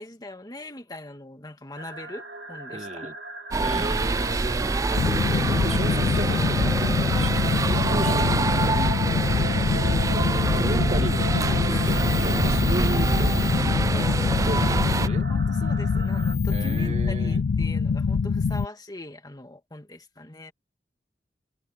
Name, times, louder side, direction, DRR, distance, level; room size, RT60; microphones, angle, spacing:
voice 1, 0.0-3.2 3.7-3.9 6.1-6.2 8.8-9.1 11.5-12.2 13.9-14.1 15.3-20.5, left 1 dB, 25° left, 2.1 m, -41 dB
sound 1, 1.8-16.3, right 2 dB, 75° right, 2.4 m, -38 dB
voice 2, 2.7-3.1 3.6-5.0 5.3-8.5 9.3-9.9 10.3-13.5 14.5-15.3 16.5-17.4, right 1 dB, 40° right, 1.7 m, -35 dB
sound 2, 3.5-15.1, right 3 dB, 20° right, 0.3 m, -25 dB
sound 3, 5.0-18.7, left 5 dB, 90° left, 0.4 m, -24 dB
head